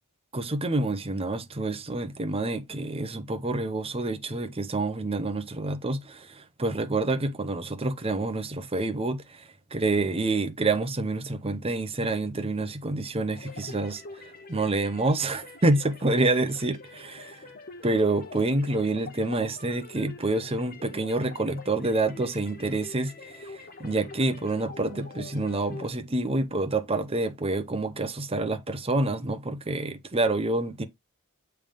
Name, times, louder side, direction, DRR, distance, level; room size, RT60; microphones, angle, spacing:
voice 1, 0.3-17.4 17.8-30.8, right 2 dB, 25° right, 0.9 m, -28 dB
sound 1, 13.3-25.9, left 3 dB, 45° left, 1.2 m, -45 dB
7.3 x 3.5 x 5.1 m
head